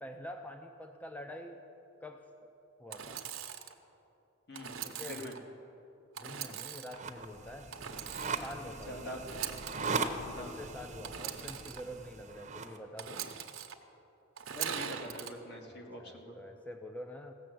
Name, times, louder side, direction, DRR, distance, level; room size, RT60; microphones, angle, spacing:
voice 1, 0.0-1.6 2.0-2.5 2.8-3.2 4.8-5.2 6.2-7.7 8.3-9.3 9.7-10.1 10.4-13.2 15.7-17.3, equal, 5° left, 5 dB, 0.5 m, -46 dB
Engine / Sawing, 2.9-3.7 4.5-5.4 6.1-7.0 7.7-8.6 9.2-10.0 11.0-11.8 13.0-13.7 14.4-15.3, right 9 dB, 70° right, 0.8 m, -41 dB
voice 2, 5.0-5.4 8.9-9.2 10.4-10.6 14.5-16.4, left 1 dB, 60° left, 1 dB, 1.7 m, -44 dB
sound 1, 6.9-12.8, right 4 dB, 35° right, 0.7 m, -39 dB
16.0 x 6.7 x 7.7 m, 3.0 s
head